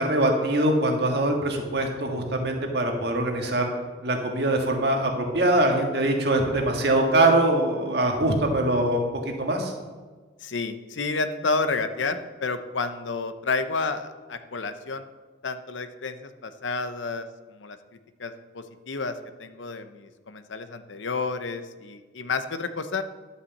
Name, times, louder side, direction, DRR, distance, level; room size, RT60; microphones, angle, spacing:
voice 1, 0.0-3.7 4.0-9.7, right 1 dB, 60° right, 2 dB, 1.7 m, -23 dB
voice 2, 10.4-15.1 15.4-17.8 18.2-23.0, left 4 dB, 85° left, 10 dB, 0.7 m, -30 dB
11.0 x 5.7 x 7.1 m, 1.4 s
head